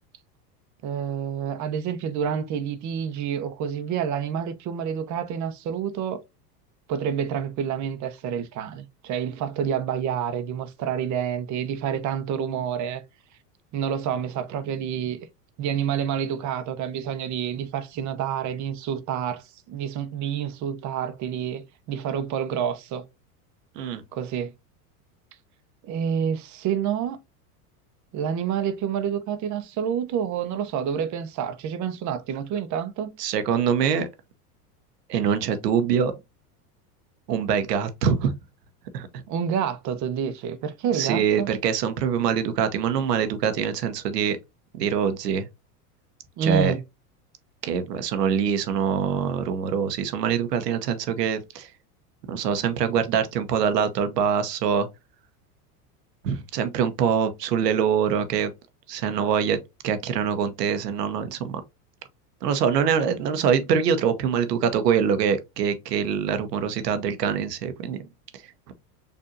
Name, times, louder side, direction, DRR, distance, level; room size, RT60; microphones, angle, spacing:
voice 1, 0.8-6.2 6.9-13.0 13.7-15.2 15.6-21.6 21.9-23.0 24.1-24.5 25.8-27.2 28.1-33.1 39.3-41.5 46.4-46.8 63.1-63.2, right 8 dB, 40° right, 0.8 m, -28 dB
voice 2, 33.2-34.1 35.1-36.1 37.3-38.3 38.9-39.2 40.9-44.4 44.7-45.5 46.4-46.7 47.6-51.7 52.3-54.9 56.2-58.5 58.9-59.6 59.8-61.6 62.4-68.1 68.7-68.8, right 7 dB, 90° right, 1.0 m, -24 dB
6.8 x 2.6 x 2.5 m
supercardioid pair, 110°, 47 cm